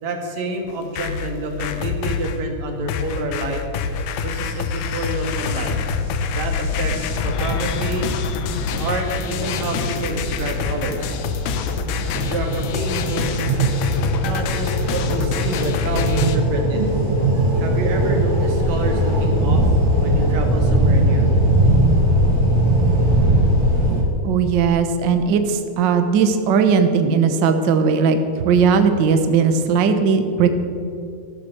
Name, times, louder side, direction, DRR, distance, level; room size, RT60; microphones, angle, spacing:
voice 1, 0.0-3.6 4.2-5.7 6.3-8.1 8.8-11.2 12.2-13.6 14.2-16.8 17.6-19.7 20.0-21.3, right 2 dB, 65° right, 3 dB, 3.0 m, -28 dB
sound 1, 0.7-2.4 2.9-16.4, left 5 dB, 80° left, 2.4 m, -25 dB
sound 2, 5.3-24.0, right 1 dB, 60° left, 5.9 m, -21 dB
voice 2, 24.2-28.2 28.4-30.5, right 6 dB, 80° right, 7 dB, 1.0 m, -17 dB
14.0 x 12.0 x 6.7 m, 2.5 s
omnidirectional pair, 3.7 m